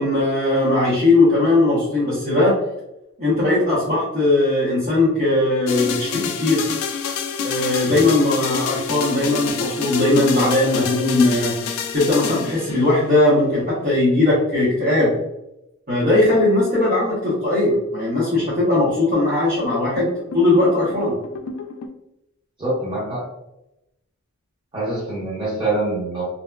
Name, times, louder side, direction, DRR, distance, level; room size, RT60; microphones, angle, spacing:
voice 1, 0.0-2.6 3.2-6.7 7.4-15.1 15.9-21.1, left 2 dB, 40° right, -9 dB, 0.8 m, -19 dB
sound 1, 5.7-13.2 19.7-21.9, left 6 dB, 85° left, 0.3 m, -28 dB
voice 2, 22.6-23.3 24.7-26.2, right 2 dB, 25° right, -8 dB, 1.4 m, -25 dB
2.8 x 2.1 x 2.2 m, 0.87 s
head